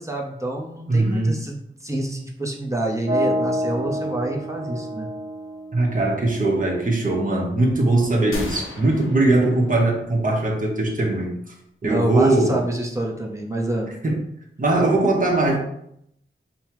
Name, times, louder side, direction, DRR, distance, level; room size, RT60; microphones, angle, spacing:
voice 1, 0.0-1.6 1.8-5.1 11.8-13.9, right 1 dB, 15° right, -1 dB, 0.8 m, -27 dB
voice 2, 0.9-1.4 5.7-11.3 11.8-12.6 14.0-14.2 14.6-15.6, right 2 dB, 40° right, -2 dB, 1.1 m, -20 dB
sound 1, 3.1-7.0, equal, 60° right, 1.3 m, -28 dB
sound 2, 8.3-10.2, left 2 dB, 85° left, 0.7 m, -35 dB
5.4 x 2.2 x 3.0 m, 0.75 s
wide cardioid pair, 60°, 20 cm